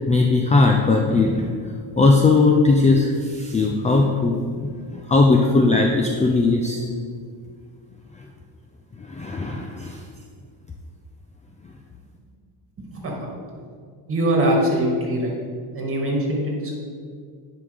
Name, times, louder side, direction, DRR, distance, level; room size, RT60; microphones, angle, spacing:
voice 1, 0.1-1.4 2.0-6.8 9.0-10.0, left 3 dB, 15° left, 1 dB, 0.4 m, -18 dB
voice 2, 12.9-13.3 14.1-15.3 15.7-16.7, right 1 dB, 30° right, -1 dB, 2.0 m, -22 dB
10.5 x 5.1 x 3.5 m, 2.1 s
cardioid pair, 115°, 43 cm